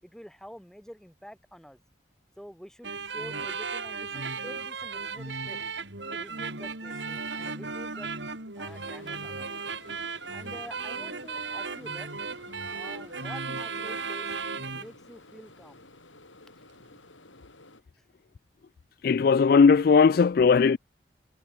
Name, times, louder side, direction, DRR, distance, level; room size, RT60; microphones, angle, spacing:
voice 1, 0.0-1.8 2.4-5.6 6.1-8.1 8.6-9.5 10.3-12.1 12.7-14.3 14.7-15.8 16.6-16.7 16.9-17.0 18.0-18.1, equal, 5° left, 7.5 m, -47 dB
sound 1, 2.8-14.9, right 4 dB, 70° right, 5.4 m, -35 dB
sound 2, 8.7-17.8, left 2 dB, 90° left, 7.8 m, -53 dB
voice 2, 19.0-20.8, left 5 dB, 50° left, 0.3 m, -18 dB
head